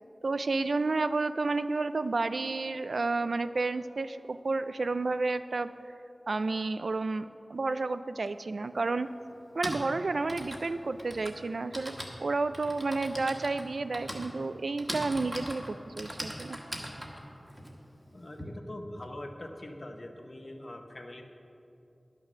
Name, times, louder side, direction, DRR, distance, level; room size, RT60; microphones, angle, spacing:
voice 1, 0.2-5.7 6.3-9.1 9.5-16.6, right 3 dB, 85° right, 12 dB, 0.3 m, -31 dB
Typing, 8.3-8.4 9.3-18.4, equal, 20° right, 1.5 m, -40 dB
voice 2, 18.1-21.3, left 1 dB, 50° left, 3 dB, 0.9 m, -43 dB
11.0 x 6.4 x 6.1 m, 2.7 s
wide cardioid pair, 65°, 0 cm